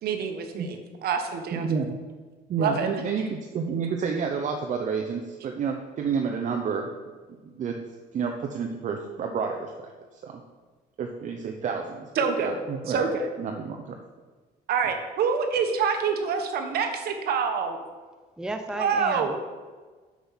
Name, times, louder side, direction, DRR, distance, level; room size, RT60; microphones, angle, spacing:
voice 1, 0.0-1.7 2.6-2.9 12.1-12.6 12.9-13.3 14.7-17.8 18.7-19.4, right 6 dB, 65° right, 5 dB, 1.2 m, -26 dB
voice 2, 1.5-2.0 2.5-6.9 7.6-7.8 8.1-10.4 11.0-12.1 12.4-13.0 13.4-14.0, right 6 dB, 50° right, 3 dB, 0.8 m, -30 dB
voice 3, 18.4-19.4, right 2 dB, 5° right, 5 dB, 0.7 m, -33 dB
6.8 x 6.3 x 5.7 m, 1.4 s
cardioid pair, 110°, 17 cm